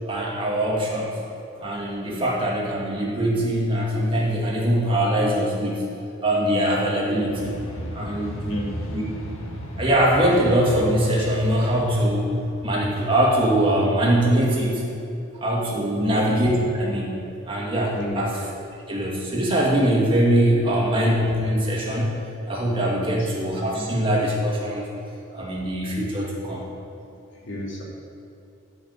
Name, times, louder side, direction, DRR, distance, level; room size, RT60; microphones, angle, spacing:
voice 1, 0.1-1.2 1.6-5.9 6.2-7.5 7.9-8.4 8.9-9.0 9.8-12.3 12.6-14.8 15.4-18.4 18.9-22.1 22.5-24.9 25.3-26.7, right 1 dB, 25° right, -4 dB, 2.3 m, -22 dB
sound 1, 7.3-12.9, equal, 85° left, 1.5 m, -35 dB
voice 2, 8.4-8.8 15.9-16.2 17.9-18.3 23.0-23.3 23.7-23.9 27.4-27.8, equal, 60° left, -5 dB, 2.9 m, -32 dB
10.5 x 6.0 x 8.6 m, 2.8 s
head